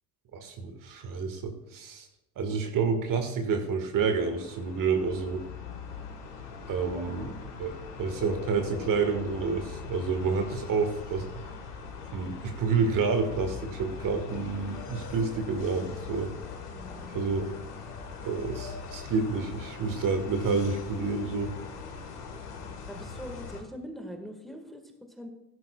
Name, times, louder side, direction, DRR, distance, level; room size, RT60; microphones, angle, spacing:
voice 1, 0.3-2.1 2.4-5.4 6.7-7.3 7.6-11.3 12.1-16.3 17.1-17.5 18.2-21.5, right 5 dB, 45° right, 6 dB, 1.8 m, -29 dB
sound 1, 3.9-23.6, left 5 dB, 85° left, 1.7 m, -41 dB
voice 2, 6.9-7.2 16.7-17.2 22.9-25.3, equal, ahead, 4 dB, 1.7 m, -43 dB
16.0 x 11.0 x 2.4 m, 0.93 s
hypercardioid pair, 65°, 45 cm